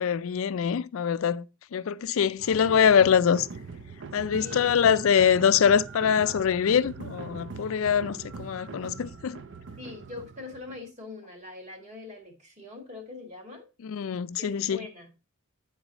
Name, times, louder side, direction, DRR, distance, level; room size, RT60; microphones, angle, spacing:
voice 1, 0.0-1.5 1.7-3.5 4.1-9.4 13.8-14.8, left 7 dB, 70° left, 0.4 m, -24 dB
sound 1, 2.4-10.9, right 4 dB, 60° right, 0.6 m, -41 dB
voice 2, 9.8-13.7 14.4-15.1, left 3 dB, 35° right, 1.9 m, -42 dB
9.6 x 4.0 x 3.9 m
head